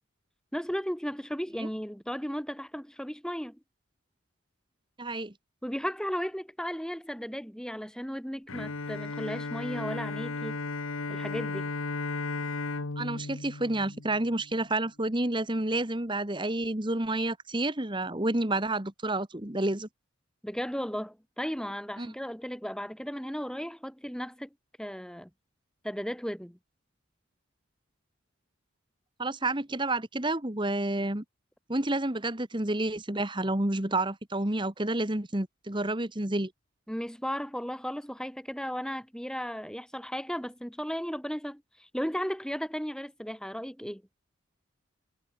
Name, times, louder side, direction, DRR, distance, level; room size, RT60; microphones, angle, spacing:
voice 1, 0.5-3.6 5.6-10.6 11.1-11.7 20.4-24.5 24.8-25.3 25.8-26.6 36.9-44.0, equal, 5° left, 4.7 m, -35 dB
voice 2, 5.0-5.3 13.0-19.9 22.0-22.1 29.2-31.2 31.7-36.5, right 2 dB, 20° right, 1.6 m, -29 dB
Bowed string instrument, 8.5-14.7, left 3 dB, 80° left, 1.3 m, -35 dB
head